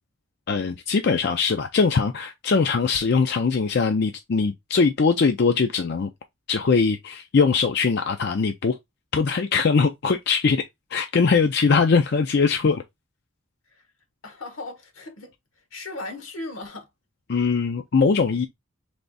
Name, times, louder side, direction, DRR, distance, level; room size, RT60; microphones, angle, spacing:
voice 1, 0.5-6.1 6.5-8.7 9.1-10.6 10.9-12.8 17.3-18.5, left 5 dB, 55° left, 0.4 m, -21 dB
voice 2, 14.2-15.3 15.7-16.9, left 2 dB, 85° left, 1.3 m, -36 dB
3.4 x 3.4 x 3.9 m
head